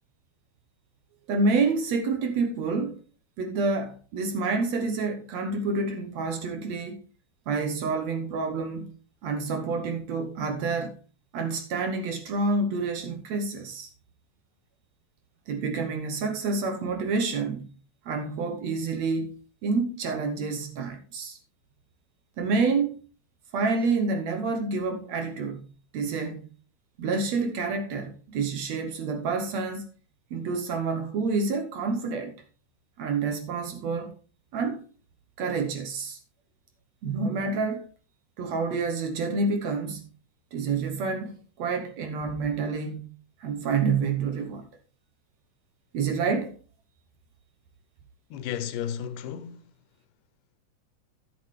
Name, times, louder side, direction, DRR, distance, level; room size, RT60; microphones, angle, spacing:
voice 1, 1.3-3.0 3.4-7.0 7.5-8.9 9.2-11.0 11.3-13.9 15.5-17.7 18.1-19.4 19.6-21.4 22.4-23.0 23.5-25.7 25.9-26.5 27.0-29.9 30.3-32.3 33.0-34.1 34.5-34.8 35.4-36.2 37.0-37.9 38.4-40.1 40.5-43.1 43.4-44.6 45.9-46.5, right 4 dB, 65° right, 1.9 m, -28 dB
voice 2, 48.3-49.7, left 9 dB, 80° left, 2.4 m, -33 dB
12.0 x 8.4 x 3.2 m
omnidirectional pair, 3.8 m